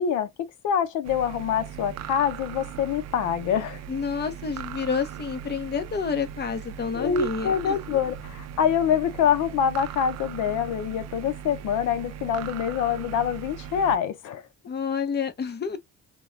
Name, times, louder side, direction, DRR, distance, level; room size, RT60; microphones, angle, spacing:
voice 1, 0.0-3.8 6.9-14.4, left 8 dB, 85° left, 0.6 m, -25 dB
sound 1, 1.0-14.0, right 9 dB, 60° right, 0.4 m, -39 dB
voice 2, 3.9-7.8 14.7-15.8, left 6 dB, 35° left, 0.7 m, -29 dB
2.2 x 2.2 x 3.1 m
cardioid pair, 90°, 30 cm